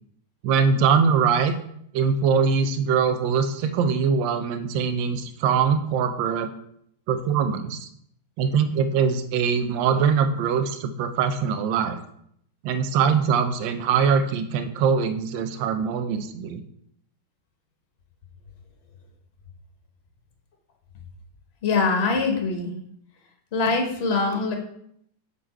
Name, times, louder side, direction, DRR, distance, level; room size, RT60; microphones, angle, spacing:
voice 1, 0.4-1.5 1.9-6.5 7.1-7.9 8.4-12.0 12.6-16.6, right 6 dB, 85° right, 9 dB, 1.3 m, -22 dB
voice 2, 21.6-22.7 23.5-24.5, left 4 dB, 40° left, 2 dB, 1.1 m, -23 dB
6.3 x 4.1 x 4.4 m, 0.70 s
omnidirectional pair, 2.0 m